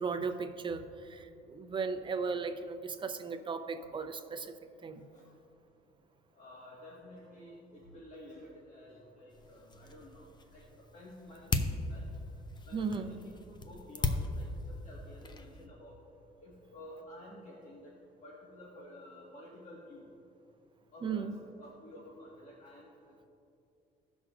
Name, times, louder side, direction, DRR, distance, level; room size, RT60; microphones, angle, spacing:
voice 1, 0.0-4.5 4.8-5.0 12.7-13.2 21.0-21.4, right 5 dB, 30° right, 7 dB, 0.6 m, -36 dB
voice 2, 6.3-12.0 12.7-16.0 16.4-18.0 18.2-20.1 20.9-23.3, left 1 dB, 45° left, -4 dB, 1.6 m, -52 dB
sound 1, 9.3-15.7, left 3 dB, 25° left, 0.6 m, -38 dB
16.5 x 6.2 x 2.5 m, 2.6 s
cardioid pair, 110°, 17 cm